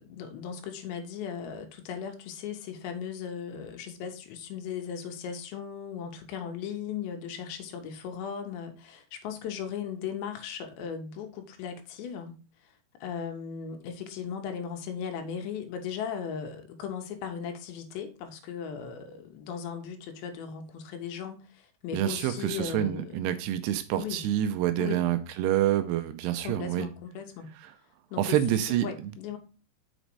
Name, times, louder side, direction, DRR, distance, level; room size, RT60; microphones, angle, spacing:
voice 1, 0.0-12.3 13.0-23.3 23.9-24.2 24.8-25.1 26.4-27.5 28.1-28.4 28.8-29.4, left 7 dB, 80° left, 3.2 m, -37 dB
voice 2, 21.9-26.9 27.6-27.7 28.2-29.1, right 12 dB, 80° right, 2.5 m, -27 dB
6.3 x 5.1 x 4.6 m
omnidirectional pair, 5.1 m